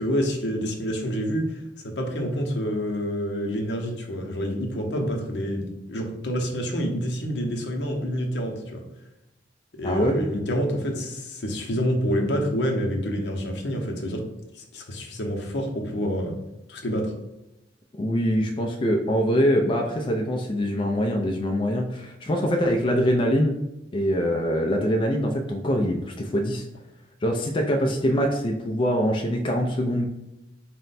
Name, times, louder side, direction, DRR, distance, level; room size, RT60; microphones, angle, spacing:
voice 1, 0.0-8.8 9.8-14.2 14.5-16.3 16.7-17.1, equal, 75° left, 2 dB, 0.7 m, -27 dB
voice 2, 9.8-10.2 18.0-23.6 23.9-26.6 27.2-30.1, equal, 30° left, 2 dB, 0.4 m, -23 dB
4.3 x 2.2 x 3.9 m, 0.91 s
head